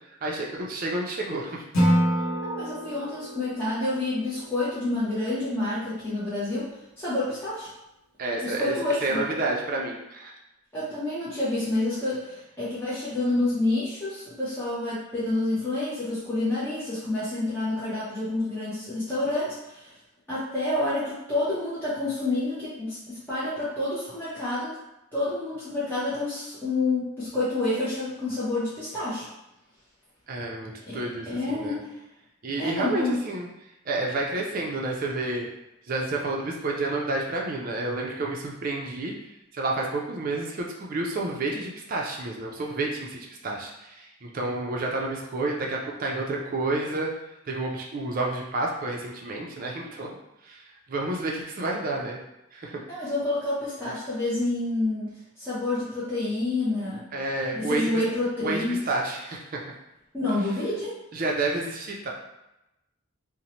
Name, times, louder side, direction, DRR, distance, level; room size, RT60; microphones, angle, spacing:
voice 1, 0.2-1.6 8.2-8.7 9.0-10.3 30.3-31.8 32.4-33.5 33.9-35.5 35.9-39.1 39.5-47.1 47.5-50.1 50.5-50.6 50.9-52.2 52.5-52.8 57.1-57.9 58.4-59.6 61.1-62.1, right 2 dB, 40° right, -1 dB, 0.4 m, -30 dB
Acoustic guitar / Strum, 1.7-4.9, equal, 80° left, 0.7 m, -27 dB
voice 2, 2.4-6.7 7.0-7.7 8.4-9.3 10.7-19.9 20.3-24.8 25.1-29.3 30.9-31.9 32.6-33.2 52.9-57.1 57.5-58.8 60.1-61.0, left 2 dB, 10° left, -12 dB, 0.6 m, -28 dB
2.7 x 2.0 x 2.8 m, 0.91 s
head